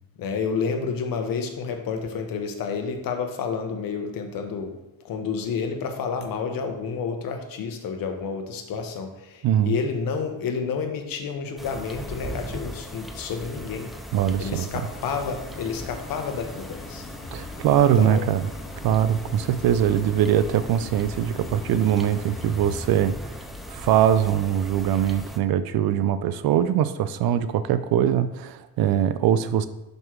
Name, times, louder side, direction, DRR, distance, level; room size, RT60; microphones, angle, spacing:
voice 1, 0.2-4.8 5.0-13.9 14.4-17.0 18.0-18.3, left 5 dB, 70° left, 5 dB, 0.9 m, -30 dB
voice 2, 9.4-9.8 14.1-14.7 17.3-18.5 18.8-23.3 23.7-29.7, right 10 dB, 85° right, 13 dB, 0.5 m, -22 dB
sound 1, 11.6-25.4, equal, ahead, 0.4 m, -39 dB
sound 2, 14.8-23.0, left 4 dB, 35° left, 0.6 m, -43 dB
6.0 x 5.3 x 3.1 m, 0.98 s
cardioid pair, 130°, 35 cm